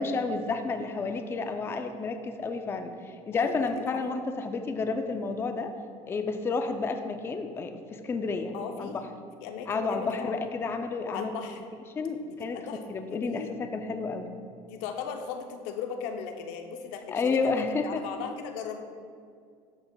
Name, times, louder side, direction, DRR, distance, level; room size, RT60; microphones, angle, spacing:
voice 1, 0.0-5.8 6.1-8.9 9.7-11.4 12.0-12.6 12.9-14.3 17.1-18.0, left 4 dB, 20° left, 7 dB, 0.3 m, -31 dB
voice 2, 3.4-4.0 8.5-9.1 9.4-10.3 11.1-11.6 12.3-13.5 14.6-18.8, left 6 dB, 85° left, 5 dB, 0.6 m, -37 dB
11.0 x 4.7 x 2.2 m, 2.2 s
cardioid pair, 125°, 12 cm